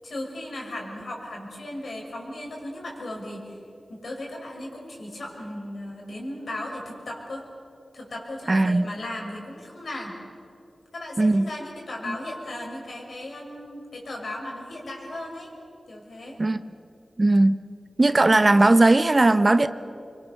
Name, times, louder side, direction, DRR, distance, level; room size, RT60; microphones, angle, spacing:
voice 1, 0.0-3.6 3.9-7.5 7.9-10.2 10.9-15.5 15.9-16.4, left 1 dB, 70° left, -1 dB, 6.4 m, -36 dB
voice 2, 8.5-8.9 11.2-11.5 16.4-16.6 17.2-17.6 18.0-19.7, right 2 dB, 35° right, 11 dB, 0.9 m, -18 dB
26.0 x 23.5 x 6.8 m, 2.6 s
cardioid pair, 55°, 0 cm